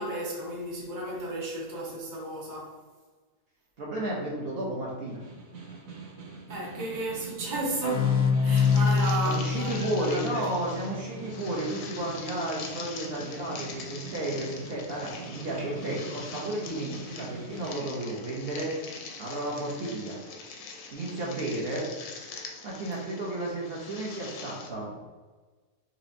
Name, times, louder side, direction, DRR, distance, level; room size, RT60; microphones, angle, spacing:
voice 1, 0.0-2.8 6.5-10.4 19.8-19.9, right 2 dB, 20° right, -4 dB, 0.6 m, -33 dB
voice 2, 3.8-5.2 9.2-18.7 19.2-20.2 20.9-21.9 22.6-25.0, right 1 dB, 55° right, -4 dB, 0.8 m, -33 dB
Snare drum, 5.1-17.8, right 4 dB, 75° right, 1.3 m, -44 dB
sound 1, 7.8-11.3, left 6 dB, 65° left, 0.7 m, -26 dB
sound 2, 8.5-24.7, left 4 dB, 90° left, 1.0 m, -43 dB
4.3 x 3.0 x 2.6 m, 1.3 s
omnidirectional pair, 1.4 m